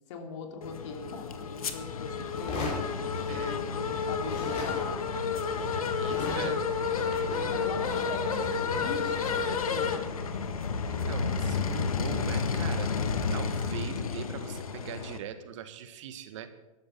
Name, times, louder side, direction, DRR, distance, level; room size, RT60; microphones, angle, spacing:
voice 1, 0.1-4.8 6.1-6.6 7.5-10.0, left 5 dB, 55° left, 4 dB, 3.0 m, -41 dB
sound 1, 0.6-15.2, left 5 dB, 75° left, 1.6 m, -31 dB
sound 2, 2.3-3.9 4.2-11.4, left 3 dB, 35° left, 6.1 m, -41 dB
voice 2, 3.3-3.6 6.0-6.6 10.9-12.9 13.3-16.5, right 9 dB, 55° right, 10 dB, 1.5 m, -41 dB
13.0 x 12.0 x 6.0 m, 1.1 s
hypercardioid pair, 110°, 18 cm